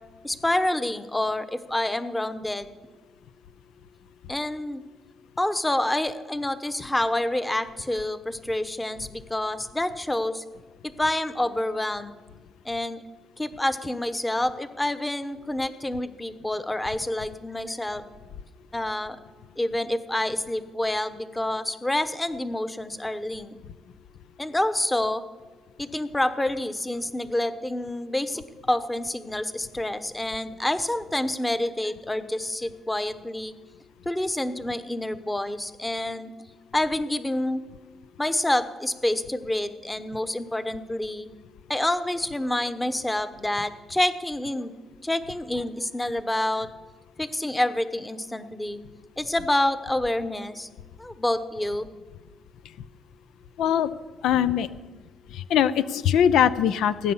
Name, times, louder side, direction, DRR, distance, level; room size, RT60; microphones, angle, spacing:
voice 1, 0.2-2.7 4.3-4.8 5.4-10.4 11.0-12.2 12.6-13.0 13.4-18.0 18.7-19.2 19.6-23.6 24.4-25.2 25.8-33.5 34.0-36.3 36.7-37.6 38.2-41.3 41.7-44.7 45.0-46.7 47.2-48.8 49.2-50.7 51.0-51.9, left 1 dB, 10° left, 12 dB, 1.0 m, -28 dB
voice 2, 53.6-53.9 54.2-54.7 55.3-57.1, left 9 dB, 80° left, 14 dB, 0.6 m, -21 dB
17.0 x 9.6 x 7.2 m, 1.3 s
cardioid pair, 90°, 0 cm